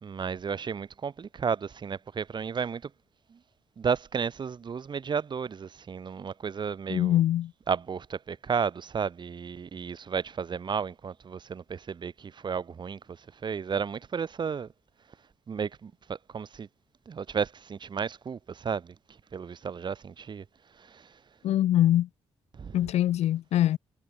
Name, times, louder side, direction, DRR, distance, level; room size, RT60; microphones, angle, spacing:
voice 1, 0.0-2.9 3.3-3.4 3.8-7.2 7.7-14.7 15.5-16.7 17.1-18.9 19.3-20.4 20.8-21.1 22.5-22.8, right 6 dB, 45° right, 1.7 m, -33 dB
voice 2, 6.9-7.5 21.4-22.1 22.7-23.8, left 12 dB, 80° left, 1.0 m, -23 dB
cardioid pair, 95°, 11 cm